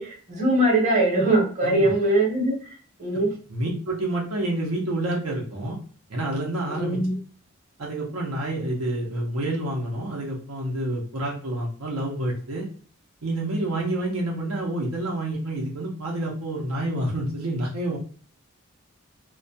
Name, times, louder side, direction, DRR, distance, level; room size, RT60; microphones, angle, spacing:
voice 1, 0.0-2.6 3.0-3.3 6.7-7.2, right 1 dB, 35° right, -3 dB, 0.8 m, -21 dB
voice 2, 1.6-1.9 3.5-5.8 6.1-7.0 7.8-12.7 13.2-18.0, right 1 dB, 75° right, -1 dB, 0.6 m, -28 dB
2.2 x 2.1 x 2.6 m, 0.43 s
head